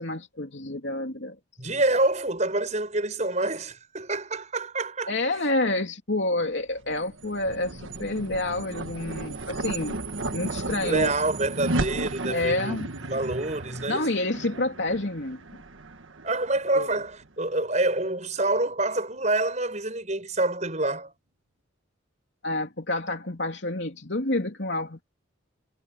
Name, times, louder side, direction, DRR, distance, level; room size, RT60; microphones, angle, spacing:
voice 1, 0.0-1.4 5.1-10.0 10.3-11.1 12.3-12.9 13.9-15.6 16.8-16.9 22.4-25.0, left 2 dB, 65° left, 3.0 m, -28 dB
voice 2, 1.6-5.1 10.8-14.1 16.2-21.1, right 2 dB, 35° right, 7.1 m, -27 dB
sound 1, 6.7-17.3, right 2 dB, 80° right, 1.6 m, -34 dB
head